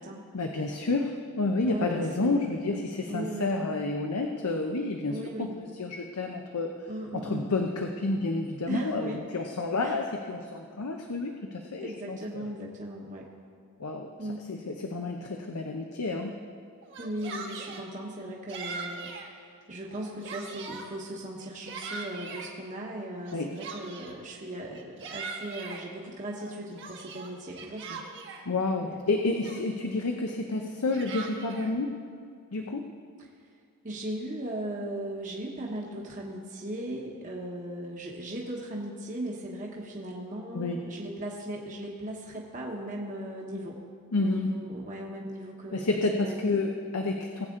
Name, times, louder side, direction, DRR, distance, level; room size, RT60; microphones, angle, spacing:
voice 1, 0.3-6.7 7.1-11.3 11.7-12.5 13.8-14.1 14.5-16.3 23.3-23.6 28.5-32.0 32.5-32.9 40.5-40.9 44.1-44.5 45.7-47.5, left 3 dB, 85° left, 3 dB, 0.7 m, -30 dB
voice 2, 1.6-2.6 3.1-3.7 5.1-5.5 6.9-7.5 8.7-9.2 9.8-9.9 11.8-13.3 14.2-14.5 17.0-19.1 19.7-28.0 28.8-29.0 33.8-43.8 44.2-46.5, right 1 dB, 35° right, -2 dB, 1.1 m, -37 dB
Yell, 16.8-17.9 18.5-19.3 19.8-20.9 21.4-22.5 23.2-24.2 24.7-25.8 26.4-28.4 29.0-29.1 29.4-29.9 30.6-31.7, right 4 dB, 55° right, 1.2 m, -40 dB
19.5 x 8.1 x 3.7 m, 2.2 s
head